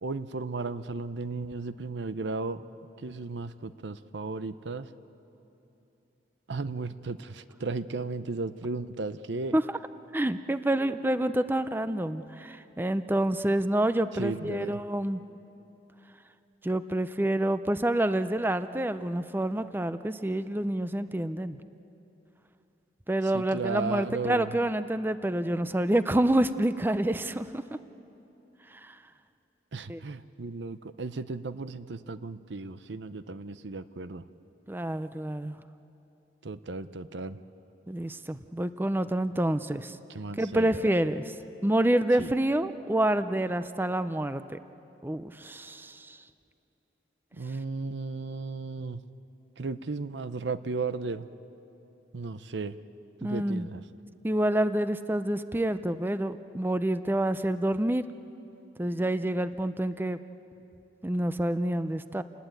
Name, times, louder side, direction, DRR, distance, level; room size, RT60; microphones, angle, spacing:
voice 1, 0.0-2.6 3.0-4.9 6.5-9.6 14.1-14.8 23.3-24.6 29.7-34.2 36.4-37.4 40.1-41.0 42.2-42.3 47.4-49.0 49.6-51.3 52.1-52.8 53.2-53.8, right 3 dB, 80° right, 12 dB, 0.7 m, -35 dB
voice 2, 10.1-15.2 16.6-21.6 23.1-27.6 28.9-29.0 29.9-30.0 34.7-35.6 37.9-40.0 40.4-41.4 41.6-44.6 45.0-46.2 53.2-53.7 54.2-58.0 58.8-60.2 61.0-62.2, right 1 dB, 10° right, 11 dB, 0.5 m, -28 dB
29.0 x 19.5 x 9.0 m, 2.9 s
head